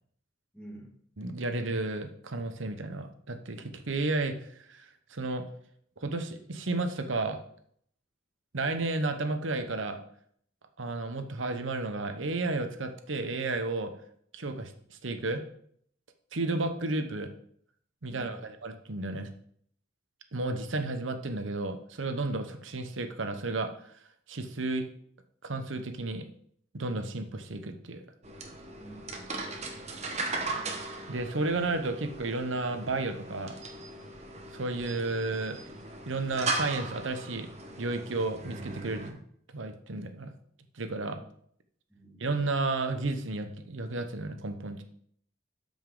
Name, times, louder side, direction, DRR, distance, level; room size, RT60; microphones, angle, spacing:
voice 1, 0.5-1.0 18.1-18.5 28.8-29.6 41.9-42.3, right 1 dB, 5° left, -3 dB, 2.0 m, -49 dB
voice 2, 1.2-5.4 6.0-7.4 8.5-10.0 10.8-13.9 14.3-15.4 16.3-17.3 18.0-19.3 20.3-23.7 24.3-24.8 25.4-26.3 26.7-28.0 31.1-33.5 34.5-35.6 36.1-37.5 37.8-39.2 39.5-40.3 40.8-41.2 42.2-44.8, right 2 dB, 90° right, 7 dB, 1.0 m, -32 dB
sound 1, 28.2-39.1, right 3 dB, 35° right, 1.1 m, -38 dB
12.5 x 5.4 x 3.9 m, 0.64 s
head